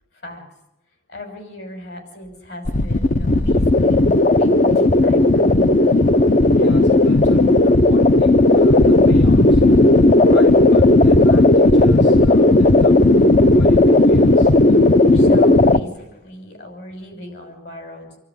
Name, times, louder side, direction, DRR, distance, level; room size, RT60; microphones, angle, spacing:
voice 1, 0.1-0.4 1.1-4.0 4.3-5.6 15.1-18.2, left 1 dB, 65° left, 5 dB, 6.2 m, -37 dB
sound 1, 2.6-15.8, left 2 dB, 45° left, 0.8 m, -13 dB
voice 2, 6.5-13.0 13.5-14.5, left 3 dB, 85° left, 5 dB, 1.6 m, -34 dB
27.5 x 13.0 x 9.7 m, 0.86 s
head